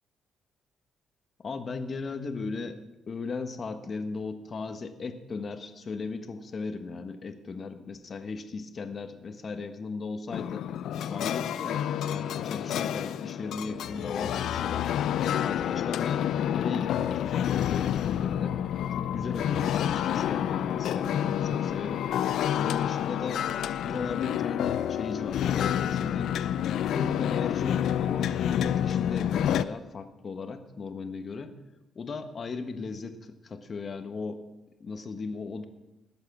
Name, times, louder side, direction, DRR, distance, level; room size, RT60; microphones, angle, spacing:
voice 1, 1.4-2.8 3.1-10.7 11.0-14.9 15.4-16.3 16.5-18.6 19.0-23.5 23.8-26.4 26.9-31.5 31.9-34.4 34.8-35.7, left 4 dB, 45° left, 8 dB, 1.4 m, -37 dB
sound 1, 10.3-29.6, left 10 dB, 75° left, 0.5 m, -28 dB
19.0 x 7.9 x 6.2 m, 1.0 s
cardioid pair, 90°, 0 cm